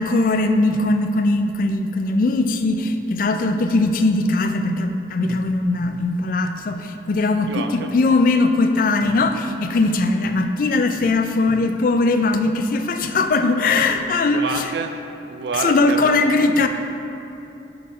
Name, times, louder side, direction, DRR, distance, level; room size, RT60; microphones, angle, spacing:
voice 1, 0.0-14.7 15.6-16.7, left 2 dB, 50° left, 7 dB, 0.3 m, -20 dB
voice 2, 7.4-7.9 14.3-15.0 15.3-16.3 16.6-16.7, right 4 dB, 70° right, 6 dB, 0.4 m, -28 dB
5.9 x 3.7 x 5.1 m, 2.9 s
head